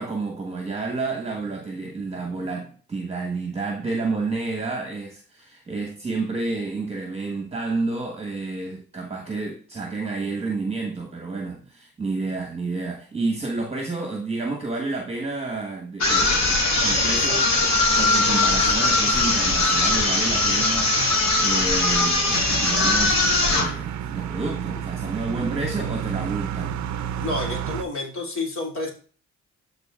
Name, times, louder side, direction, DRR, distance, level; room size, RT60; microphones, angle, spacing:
voice 1, 0.0-26.9, right 3 dB, 20° right, 1.3 m, -30 dB
sound 1, 16.0-23.8, left 2 dB, 60° left, 2.2 m, -20 dB
sound 2, 22.3-27.8, right 9 dB, 70° right, 0.6 m, -30 dB
voice 2, 27.2-28.9, left 2 dB, 45° left, 2.6 m, -29 dB
12.0 x 4.1 x 2.4 m
cardioid pair, 90°, 30 cm